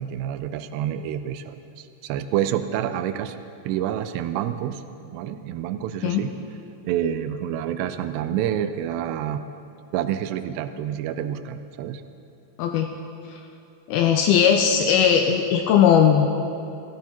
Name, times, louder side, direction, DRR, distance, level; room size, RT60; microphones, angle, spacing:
voice 1, 0.0-3.4 3.6-4.8 5.1-6.3 6.9-9.4 9.9-12.0, right 10 dB, 80° right, 10 dB, 2.6 m, -28 dB
voice 2, 12.6-12.9 13.3-13.4 13.9-16.3, left 8 dB, 85° left, 5 dB, 2.2 m, -18 dB
16.5 x 14.0 x 4.5 m, 2.6 s
omnidirectional pair, 5.0 m